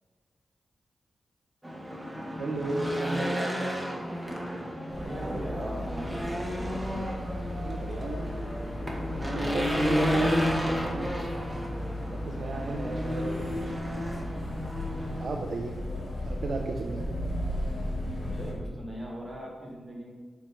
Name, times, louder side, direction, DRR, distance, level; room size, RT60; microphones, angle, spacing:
Race car auto racing / Engine, 1.6-15.3, equal, 10° right, 1.2 m, -32 dB
voice 1, 2.4-3.9 7.6-8.2 9.2-11.1 12.1-13.8 15.2-15.8 16.3-17.1, right 3 dB, 65° right, 2 dB, 0.5 m, -35 dB
sound 1, 4.9-18.5, left 1 dB, 75° left, 1.8 m, -36 dB
voice 2, 4.9-7.0 15.8-16.2 18.3-20.1, right 1 dB, 30° right, -2 dB, 1.7 m, -40 dB
6.1 x 4.5 x 4.4 m, 1.5 s
cardioid pair, 80°, 0 cm